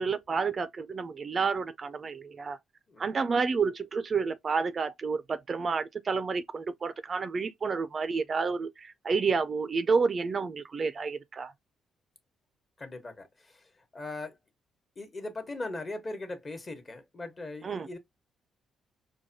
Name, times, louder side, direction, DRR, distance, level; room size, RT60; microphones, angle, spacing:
voice 1, 0.0-2.6 3.0-11.5 17.6-17.9, right 5 dB, 40° right, 0.4 m, -30 dB
voice 2, 12.8-14.3 15.0-18.0, left 2 dB, 30° left, 1.0 m, -39 dB
4.5 x 2.2 x 2.6 m
cardioid pair, 90°, 0 cm